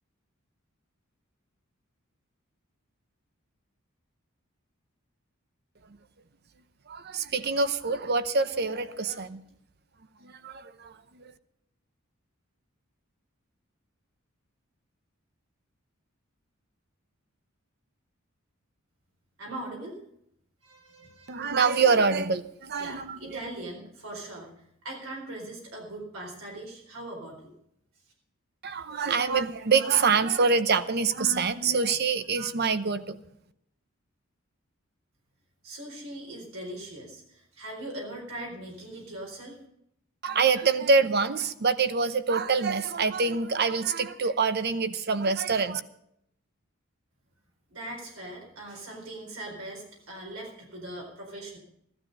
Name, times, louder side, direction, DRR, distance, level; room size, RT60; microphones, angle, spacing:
voice 1, 6.9-9.4 10.2-11.3 21.3-23.4 28.6-33.2 40.2-45.8, right 4 dB, 50° right, 12 dB, 0.8 m, -25 dB
voice 2, 19.4-20.0 20.6-21.4 22.8-24.5 24.8-27.5 35.6-39.6 47.7-51.6, right 1 dB, 80° right, -1 dB, 4.4 m, -40 dB
15.5 x 12.5 x 5.3 m, 0.74 s
head